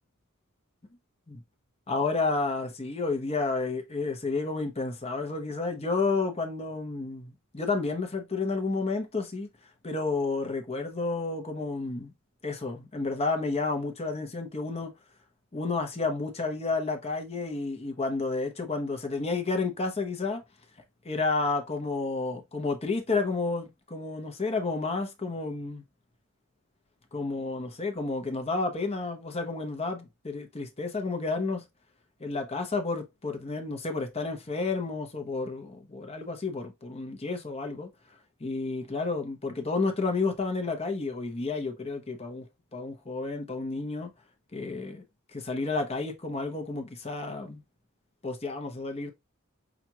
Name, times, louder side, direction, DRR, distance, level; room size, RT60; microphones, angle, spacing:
voice 1, 1.9-9.5 9.8-12.1 12.4-14.9 15.5-20.4 21.0-25.8 27.1-31.7 32.2-37.9 38.4-42.5 42.7-44.1 44.5-45.0 45.3-47.6 48.2-49.1, left 3 dB, 30° left, 0.8 m, -31 dB
6.0 x 2.5 x 2.8 m
head